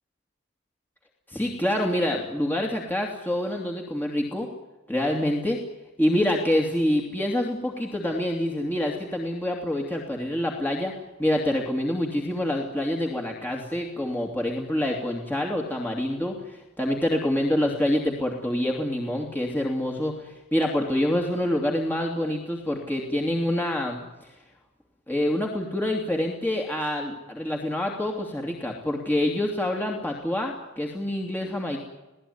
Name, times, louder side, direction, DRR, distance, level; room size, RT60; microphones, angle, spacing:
voice 1, 1.3-4.5 4.9-5.6 6.0-10.9 11.2-24.3 25.1-31.8, left 1 dB, 10° left, 0 dB, 2.7 m, -26 dB
27.5 x 18.0 x 9.6 m, 1.1 s
head